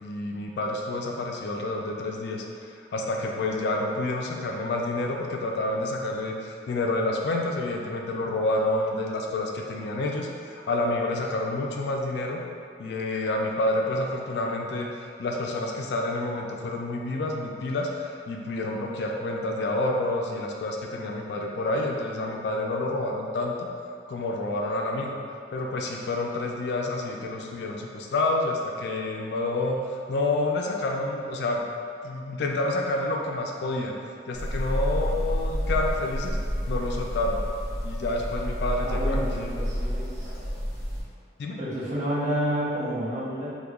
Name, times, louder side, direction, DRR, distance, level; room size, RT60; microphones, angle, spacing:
voice 1, 0.0-2.4 2.9-12.4 12.8-23.7 24.1-25.2 25.5-31.6 32.0-33.9 34.3-36.4 36.7-37.4 37.8-39.5 41.4-41.6, left 2 dB, 60° left, 0 dB, 0.3 m, -28 dB
sound 1, 34.3-41.0, equal, 15° left, 0.6 m, -29 dB
voice 2, 38.8-40.3 41.6-43.5, equal, 40° right, -10 dB, 0.9 m, -29 dB
2.8 x 2.2 x 3.5 m, 2.4 s
head